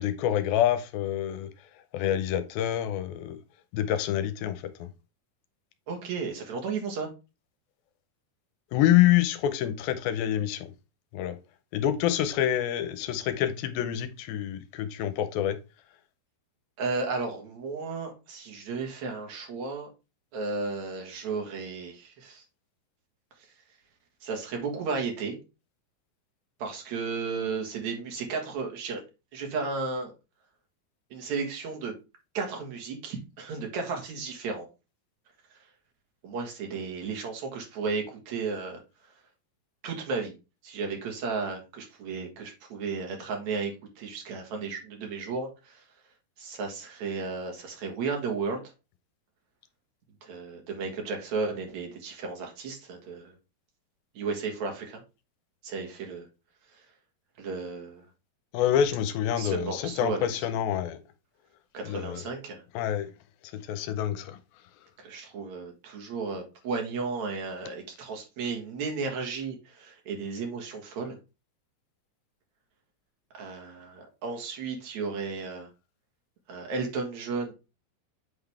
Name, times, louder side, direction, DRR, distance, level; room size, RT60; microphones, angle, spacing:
voice 1, 0.0-1.5 1.9-3.4 3.7-4.9 8.7-10.7 11.1-11.4 11.7-15.6 58.5-61.0 61.8-62.3 62.7-63.1 63.5-64.4, left 11 dB, 80° left, 2.4 m, -27 dB
voice 2, 5.9-7.1 16.8-19.9 20.3-22.4 24.2-25.4 26.6-29.0 29.3-30.1 31.1-31.9 32.3-34.7 36.2-38.8 39.8-40.3 40.6-45.8 46.4-48.6 50.2-53.3 54.1-55.0 55.6-56.3 57.4-58.0 59.3-60.5 61.7-62.6 65.0-71.2 73.3-75.7 76.5-77.5, right 4 dB, 55° right, 2.6 m, -34 dB
8.4 x 3.9 x 3.3 m
omnidirectional pair, 4.4 m